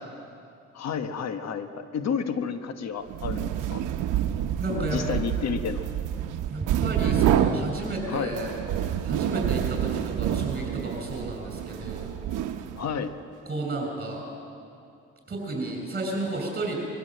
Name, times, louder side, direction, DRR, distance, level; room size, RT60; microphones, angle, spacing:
voice 1, 0.7-3.8 4.7-5.9 8.1-8.3 12.8-13.1, left 6 dB, 60° left, 9 dB, 1.3 m, -31 dB
sound 1, 3.1-13.0, right 10 dB, 85° right, 0.9 m, -28 dB
voice 2, 4.6-5.0 6.5-8.5 9.0-12.1 13.4-14.3 15.3-16.8, right 2 dB, 30° right, 0 dB, 6.6 m, -32 dB
22.5 x 15.0 x 7.9 m, 2.5 s
cardioid pair, 90°, 30 cm